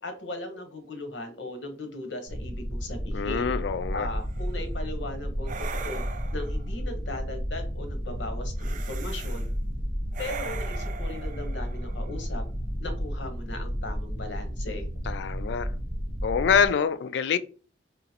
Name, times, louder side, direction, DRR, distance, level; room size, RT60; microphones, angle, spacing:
voice 1, 0.0-3.5 3.9-6.0 6.3-9.4 10.2-12.4 12.8-14.9, left 2 dB, 90° left, 1.0 m, -38 dB
sound 1, 2.3-16.7, equal, 15° left, 1.2 m, -32 dB
voice 2, 3.1-4.1 15.1-15.7 16.2-17.4, left 6 dB, 70° left, 0.4 m, -25 dB
sound 2, 4.3-4.6 5.5-6.7 8.6-9.5 10.1-12.4, right 6 dB, 45° right, 0.4 m, -40 dB
3.7 x 3.0 x 2.8 m
head